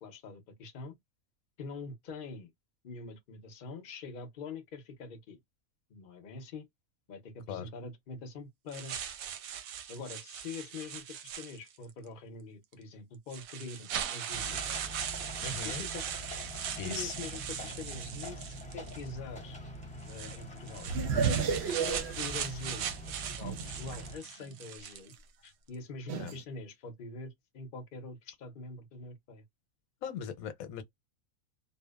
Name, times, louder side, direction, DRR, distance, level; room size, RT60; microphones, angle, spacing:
voice 1, 0.0-0.9 1.6-2.5 2.8-5.4 5.9-6.7 7.1-9.0 9.9-14.6 15.6-16.0 16.6-19.6 20.1-20.9 21.9-25.1 25.4-29.4, left 3 dB, 50° left, 0.7 m, -44 dB
sound 1, 8.7-11.9 12.7-12.8 13.3-19.1 20.0-25.2, right 9 dB, 90° right, 1.0 m, -39 dB
sound 2, 14.3-24.2, equal, 10° left, 0.3 m, -45 dB
voice 2, 15.4-15.8 16.8-17.1 21.6-21.8 26.2-26.3 30.0-30.8, left 7 dB, 90° left, 1.1 m, -39 dB
sound 3, 20.9-24.0 24.4-24.5 26.1-26.4, right 5 dB, 65° right, 0.8 m, -32 dB
2.8 x 2.0 x 2.2 m
omnidirectional pair, 1.4 m